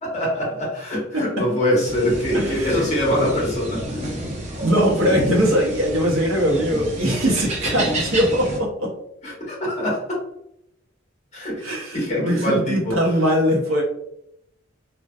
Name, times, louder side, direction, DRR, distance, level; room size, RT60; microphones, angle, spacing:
voice 1, 0.0-4.1 9.2-10.2 11.3-11.6 11.9-13.0, equal, 35° left, -4 dB, 1.0 m, -23 dB
voice 2, 1.1-1.5 2.3-2.9 4.6-8.9 11.6-13.8, equal, 80° right, -1 dB, 0.8 m, -21 dB
sound 1, 1.8-8.6, right 1 dB, 35° right, 0.6 m, -29 dB
2.6 x 2.2 x 2.2 m, 0.75 s
head